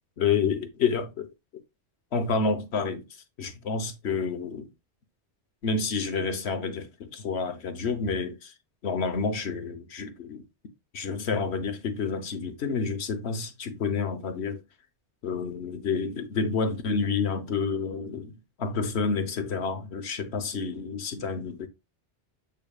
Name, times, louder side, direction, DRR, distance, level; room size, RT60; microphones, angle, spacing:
voice 1, 0.2-1.3 2.1-4.7 5.6-8.5 8.8-10.4 10.9-14.6 15.2-21.7, left 5 dB, 65° left, 1.2 m, -29 dB
8.1 x 5.3 x 2.3 m
omnidirectional pair, 1.2 m